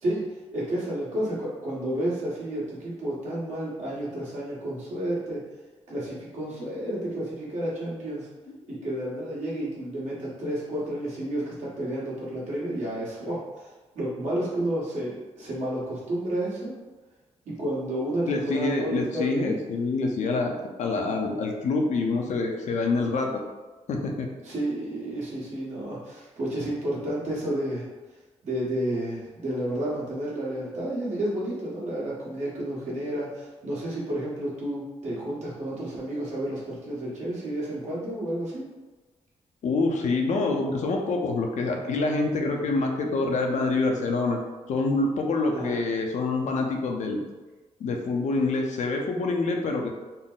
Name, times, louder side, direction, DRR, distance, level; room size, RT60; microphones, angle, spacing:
voice 1, 0.5-5.4 5.9-8.3 8.7-16.7 17.4-19.5 24.4-27.9 28.4-38.6 42.6-42.7 45.5-45.9, right 1 dB, 70° right, -7 dB, 1.5 m, -31 dB
voice 2, 18.3-23.4 23.9-24.3 39.6-44.4 44.7-47.2 47.8-49.9, left 3 dB, 75° left, 2 dB, 0.6 m, -26 dB
3.9 x 2.0 x 3.9 m, 1.2 s
cardioid pair, 90°, 12 cm